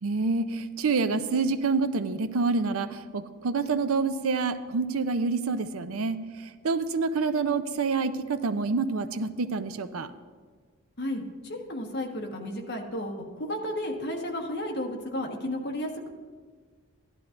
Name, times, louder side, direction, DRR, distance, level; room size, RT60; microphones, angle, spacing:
voice 1, 0.0-6.2 6.6-10.1, right 4 dB, 85° right, 12 dB, 0.5 m, -27 dB
voice 2, 11.0-16.1, left 1 dB, 50° left, 1 dB, 1.3 m, -33 dB
15.5 x 11.5 x 2.5 m, 1.5 s
head